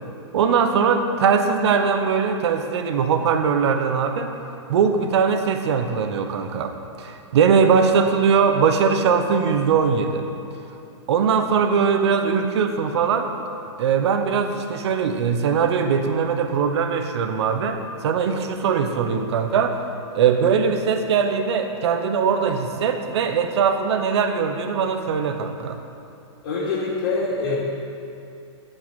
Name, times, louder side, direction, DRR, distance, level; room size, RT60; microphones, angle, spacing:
voice 1, 0.3-4.3 4.7-10.2 11.1-13.3 13.8-19.8 20.1-25.8, right 6 dB, 65° right, 6 dB, 1.1 m, -21 dB
voice 2, 26.4-27.5, left 3 dB, 50° left, -8 dB, 2.7 m, -24 dB
10.5 x 5.6 x 8.2 m, 2.7 s
hypercardioid pair, 160°, 15 cm